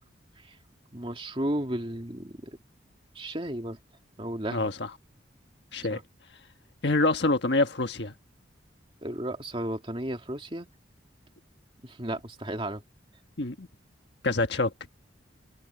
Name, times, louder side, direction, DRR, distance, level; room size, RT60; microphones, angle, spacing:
voice 1, 0.9-2.6 3.1-3.8 4.2-4.7 5.9-6.0 9.0-10.7 11.8-12.8, right 1 dB, 25° right, 2.6 m, -34 dB
voice 2, 6.8-8.1 13.4-13.7 14.2-14.7, left 2 dB, 60° left, 1.5 m, -25 dB
head